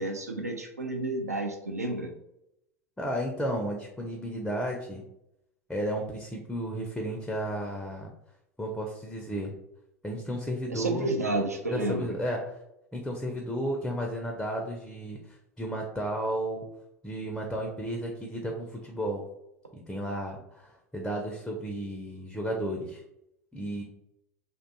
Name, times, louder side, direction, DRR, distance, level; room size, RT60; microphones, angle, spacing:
voice 1, 0.0-2.1 10.7-12.1, right 2 dB, 90° right, 3 dB, 0.4 m, -30 dB
voice 2, 3.0-5.0 5.7-8.1 8.6-9.5 10.0-11.1 11.7-12.5 12.9-16.6 17.0-19.2 19.7-23.0 23.5-23.8, equal, 5° left, 1 dB, 0.4 m, -33 dB
2.4 x 2.2 x 2.6 m, 0.83 s
figure-of-eight pair, 80°, 8 cm